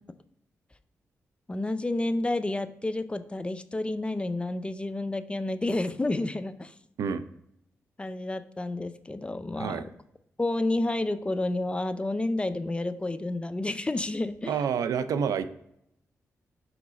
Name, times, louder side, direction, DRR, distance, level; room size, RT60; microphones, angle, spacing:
voice 1, 1.5-6.7 8.0-9.9 10.4-14.5, left 2 dB, 20° left, 11 dB, 0.4 m, -30 dB
voice 2, 14.5-15.5, right 7 dB, 85° right, 12 dB, 0.4 m, -28 dB
5.0 x 4.0 x 4.7 m, 0.76 s
cardioid pair, 60°, 6 cm